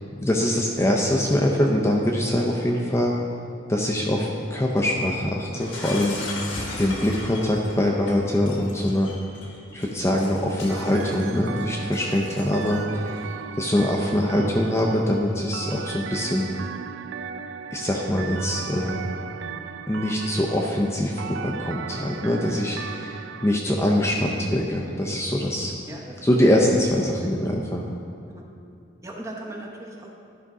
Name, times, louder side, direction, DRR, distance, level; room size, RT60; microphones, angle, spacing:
voice 1, 0.1-3.2 3.7-6.2 6.8-9.1 9.7-13.2 13.5-16.5 17.7-19.1 19.9-25.7 26.2-27.8, left 1 dB, 15° left, -2 dB, 0.5 m, -23 dB
Shatter, 5.6-13.0, left 2 dB, 80° left, 1.3 m, -37 dB
sound 1, 10.7-23.6, right 7 dB, 75° right, 0.3 m, -37 dB
voice 2, 29.0-30.1, right 1 dB, 15° right, 0 dB, 0.8 m, -38 dB
12.0 x 5.1 x 3.6 m, 2.4 s
head